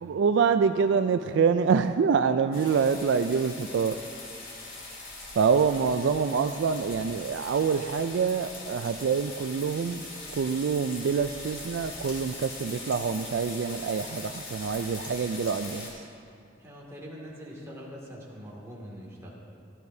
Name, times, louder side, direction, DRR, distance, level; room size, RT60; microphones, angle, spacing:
voice 1, 0.0-4.0 5.4-15.9, right 6 dB, 65° right, 9 dB, 0.3 m, -26 dB
sound 1, 2.5-15.9, left 2 dB, 85° left, 3.5 m, -41 dB
voice 2, 16.6-19.4, equal, 15° right, -5 dB, 2.2 m, -43 dB
16.5 x 14.0 x 2.7 m, 2.5 s
head